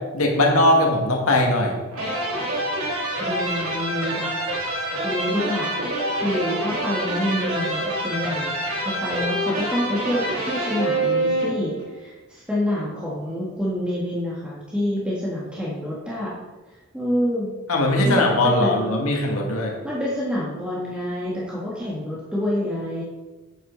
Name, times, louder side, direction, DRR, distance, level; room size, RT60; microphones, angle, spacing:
voice 1, 0.1-1.8 17.7-19.7, left 1 dB, 90° left, 0 dB, 2.0 m, -19 dB
sound 1, 1.9-11.9, right 1 dB, 90° right, 3.0 m, -26 dB
voice 2, 3.2-4.3 5.0-5.8 6.1-16.3 16.9-17.5 18.0-18.8 19.8-23.0, left 1 dB, 5° right, -7 dB, 1.8 m, -27 dB
9.1 x 8.4 x 4.1 m, 1.2 s
head